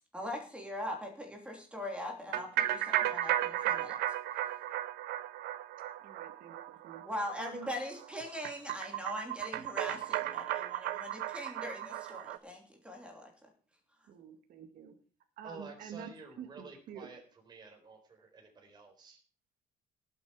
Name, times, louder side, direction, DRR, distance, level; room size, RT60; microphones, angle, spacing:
voice 1, 0.1-4.0 7.0-13.3, left 1 dB, 5° right, 1 dB, 3.1 m, -41 dB
sound 1, 2.3-12.4, right 13 dB, 85° right, 0.9 m, -35 dB
voice 2, 6.0-7.0 7.4-7.7 14.1-14.9 15.4-16.1 16.4-16.5 16.9-17.1, right 8 dB, 65° right, 5 dB, 2.1 m, -47 dB
voice 3, 15.4-19.2, right 4 dB, 25° right, 3 dB, 4.1 m, -51 dB
18.5 x 8.2 x 4.9 m, 0.41 s
cardioid pair, 155°, 16 cm